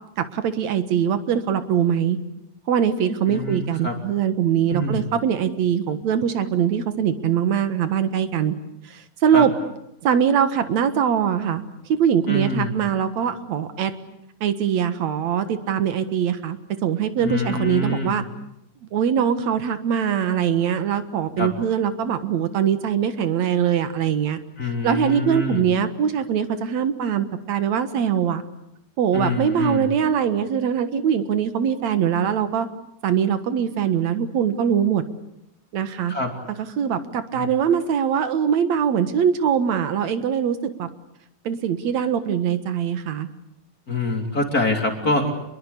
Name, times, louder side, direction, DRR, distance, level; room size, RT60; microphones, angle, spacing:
voice 1, 0.2-2.2 2.7-8.5 8.8-9.5 10.0-11.6 11.9-13.9 14.4-18.2 18.9-24.4 24.8-28.4 29.0-32.7 33.0-35.0 35.7-36.1 36.6-40.9 41.5-43.3, right 8 dB, 60° right, 10 dB, 2.6 m, -22 dB
voice 2, 3.3-4.0 4.7-5.1 9.3-9.4 12.3-12.8 17.2-18.2 21.4-21.5 24.6-25.6 29.1-29.9 36.1-36.3 37.3-37.5 43.9-45.3, left 2 dB, 25° left, 3 dB, 3.3 m, -25 dB
28.5 x 22.0 x 8.4 m, 0.84 s
omnidirectional pair, 3.8 m